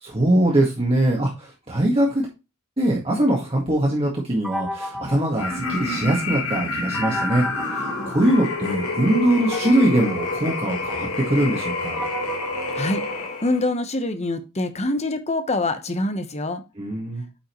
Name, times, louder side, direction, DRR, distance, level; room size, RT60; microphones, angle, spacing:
voice 1, 0.0-2.3 2.8-12.0 16.8-17.2, right 1 dB, 25° right, -2 dB, 1.8 m, -22 dB
sound 1, 4.4-6.3 6.9-8.7 9.4-13.7, equal, 5° right, 1.2 m, -35 dB
sound 2, 5.3-13.7, left 3 dB, 80° left, 3.4 m, -28 dB
voice 2, 13.4-16.6, left 2 dB, 30° left, 9 dB, 1.0 m, -25 dB
8.8 x 5.4 x 3.0 m, 0.26 s
head